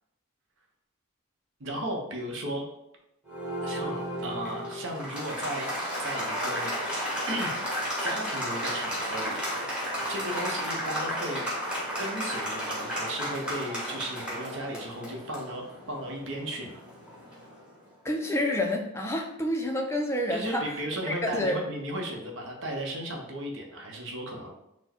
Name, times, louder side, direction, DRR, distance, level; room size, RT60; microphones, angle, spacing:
voice 1, 1.6-2.7 3.6-5.7 6.0-6.7 7.3-9.8 10.1-11.4 12.0-16.8 20.3-24.5, right 1 dB, 55° right, 1 dB, 0.8 m, -35 dB
Applause, 3.3-17.6, equal, 5° right, 1.1 m, -33 dB
voice 2, 18.0-20.6 21.2-21.6, left 1 dB, 10° left, 1 dB, 0.4 m, -28 dB
4.3 x 2.1 x 4.3 m, 0.83 s
head